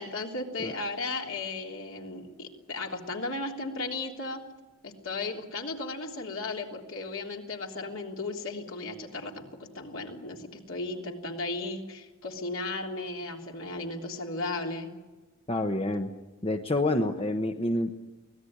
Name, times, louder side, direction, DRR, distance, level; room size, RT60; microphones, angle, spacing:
voice 1, 0.0-4.4 4.8-14.9, left 3 dB, 65° left, 1 dB, 3.4 m, -35 dB
voice 2, 15.5-16.1 16.4-18.0, left 1 dB, 25° left, 5 dB, 1.1 m, -28 dB
24.0 x 18.0 x 9.7 m, 1.2 s
head